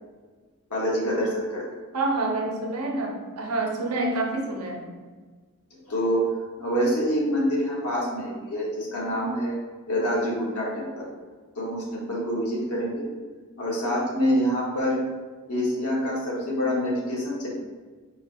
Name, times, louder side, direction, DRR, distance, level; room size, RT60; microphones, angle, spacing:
voice 1, 0.7-1.6 5.9-6.3 6.6-9.5 9.9-11.1 11.5-13.1 13.6-15.0 15.5-17.5, equal, 90° left, -5 dB, 1.5 m, -26 dB
voice 2, 1.9-4.9, right 2 dB, 85° right, 0 dB, 0.9 m, -27 dB
4.7 x 2.7 x 4.2 m, 1.4 s
head